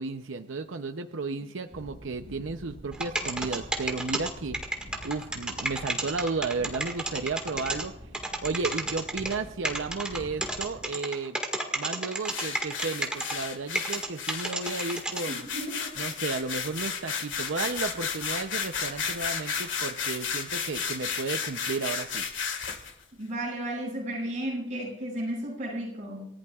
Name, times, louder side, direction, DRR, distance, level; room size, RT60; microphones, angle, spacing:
voice 1, 0.0-4.6 5.0-7.9 8.4-11.4 11.7-15.5 16.0-22.3, right 4 dB, 85° right, 7 dB, 0.7 m, -33 dB
sound 1, 1.7-10.9, equal, 60° right, 5.3 m, -46 dB
sound 2, 2.9-7.8 8.1-9.4 9.7-13.4 13.8-15.2, right 2 dB, 5° right, 1.8 m, -31 dB
sound 3, 12.3-22.9, left 6 dB, 80° left, 1.9 m, -33 dB
voice 2, 15.3-15.9 23.1-26.3, right 1 dB, 40° right, -3 dB, 7.1 m, -34 dB
28.5 x 15.0 x 2.4 m, 0.88 s
head